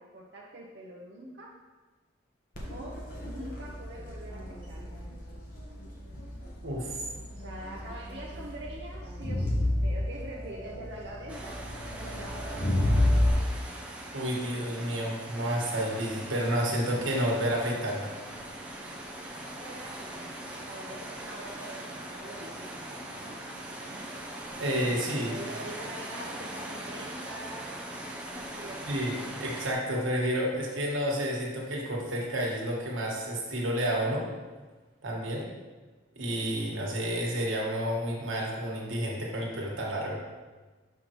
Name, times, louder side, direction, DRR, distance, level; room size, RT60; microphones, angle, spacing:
voice 1, 0.0-1.5 2.7-5.0 7.3-11.6 12.0-12.8 19.5-23.7 25.2-27.8 28.5-29.0 35.4-35.6, right 1 dB, 60° right, -4 dB, 0.7 m, -44 dB
Crowd, 2.5-13.3, left 1 dB, 45° left, 1.2 m, -31 dB
voice 2, 6.6-7.0 14.1-18.1 24.6-25.3 28.9-34.3 35.0-35.5 36.1-40.2, equal, 85° right, -2 dB, 1.5 m, -30 dB
sound 1, 11.3-29.7, right 1 dB, 5° right, 0.5 m, -41 dB
6.4 x 5.7 x 3.0 m, 1.3 s
head